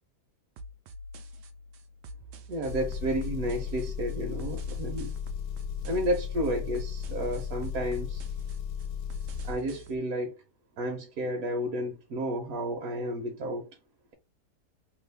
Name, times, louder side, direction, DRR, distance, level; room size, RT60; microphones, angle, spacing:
sound 1, 0.6-10.0, right 1 dB, 85° right, 1.2 m, -46 dB
voice 1, 2.5-5.1 5.8-8.2 9.4-10.4 10.8-13.7, equal, 65° right, 1.1 m, -31 dB
Engine, 2.7-9.6, left 8 dB, 75° left, 1.2 m, -35 dB
3.1 x 2.3 x 3.3 m
omnidirectional pair, 1.7 m